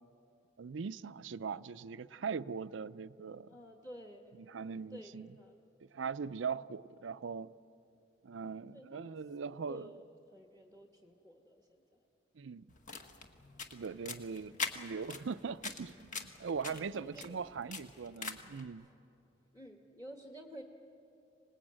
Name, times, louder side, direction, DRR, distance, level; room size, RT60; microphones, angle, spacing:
voice 1, 0.6-3.5 4.5-5.3 5.8-7.5 8.2-9.9 12.4-12.7 13.7-18.9, right 5 dB, 80° right, 0.5 m, -40 dB
voice 2, 3.4-4.4 4.9-5.6 8.7-9.2 9.7-12.0 16.7-17.4 18.4-18.5 18.8-19.0 19.5-20.6, equal, 15° left, 1.3 m, -52 dB
sound 1, 12.7-18.6, left 4 dB, 45° left, 1.6 m, -44 dB
25.5 x 20.0 x 8.8 m
head